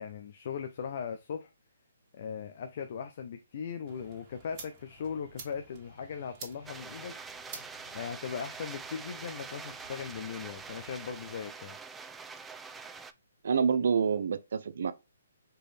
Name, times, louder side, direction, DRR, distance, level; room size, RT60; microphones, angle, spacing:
voice 1, 0.0-1.5 2.1-7.2 7.9-11.8, left 7 dB, 50° left, 0.6 m, -39 dB
sound 1, 3.9-11.3, right 3 dB, 25° right, 1.7 m, -51 dB
sound 2, 6.6-13.1, right 5 dB, 10° right, 0.3 m, -45 dB
voice 2, 13.4-14.9, right 6 dB, 65° right, 0.6 m, -27 dB
4.5 x 3.1 x 3.3 m
hypercardioid pair, 150°, 0 cm